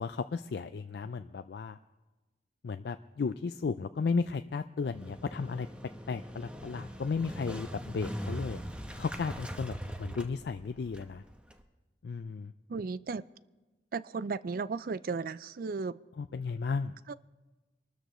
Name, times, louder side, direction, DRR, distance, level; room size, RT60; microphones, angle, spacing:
voice 1, 0.0-1.8 2.6-5.7 6.1-8.6 9.0-11.2 12.0-12.5 16.2-16.9, left 4 dB, 65° left, 0.4 m, -34 dB
Motorcycle, 4.8-11.6, equal, 5° right, 0.9 m, -41 dB
voice 2, 12.7-13.2 13.9-16.0 17.1-17.2, right 4 dB, 55° right, 0.4 m, -35 dB
24.0 x 13.0 x 3.1 m
head